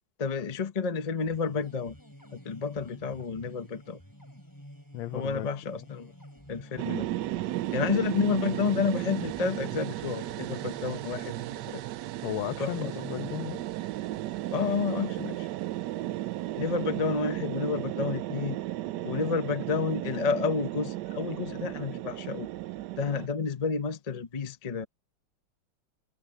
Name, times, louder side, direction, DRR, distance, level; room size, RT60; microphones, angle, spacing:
voice 1, 0.2-1.9 2.3-4.0 5.1-6.1 6.5-7.1 7.7-11.8 12.6-12.9 14.5-15.5 16.6-18.6 19.0-22.5 23.0-24.8, left 5 dB, 30° left, 0.7 m, -30 dB
sound 1, 1.0-12.1, equal, 10° left, 6.5 m, -50 dB
voice 2, 4.9-5.5 12.2-13.6, left 14 dB, 75° left, 1.3 m, -34 dB
sound 2, 6.8-23.3, right 15 dB, 85° right, 0.9 m, -34 dB
omnidirectional pair, 2.4 m